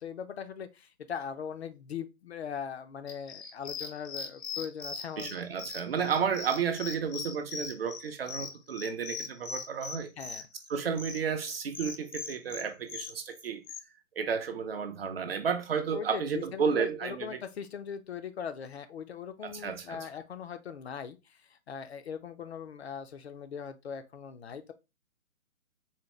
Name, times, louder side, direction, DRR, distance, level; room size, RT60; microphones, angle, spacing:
voice 1, 0.0-5.3 6.0-6.2 10.2-10.4 15.9-24.7, left 7 dB, 55° left, 0.5 m, -40 dB
sound 1, 3.1-13.8, left 5 dB, 70° left, 0.9 m, -40 dB
voice 2, 5.2-10.1 10.7-13.6 14.2-17.4 19.4-20.1, right 6 dB, 45° right, 0.5 m, -32 dB
4.0 x 2.2 x 3.0 m
figure-of-eight pair, 140°, 41 cm